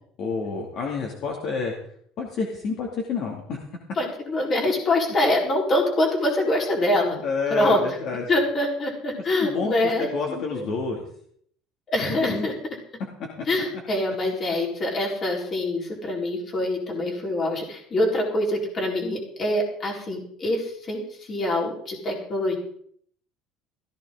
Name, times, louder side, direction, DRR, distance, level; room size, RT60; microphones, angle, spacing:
voice 1, 0.2-1.8 2.2-3.6 7.2-8.2 9.4-11.0 12.0-12.5, left 4 dB, 45° left, 0 dB, 2.6 m, -29 dB
voice 2, 3.9-7.2 7.5-8.0 8.3-10.7 11.9-12.5 13.4-22.6, left 1 dB, 25° left, -1 dB, 4.3 m, -25 dB
16.5 x 14.5 x 3.9 m, 0.62 s
cardioid pair, 170°, 0 cm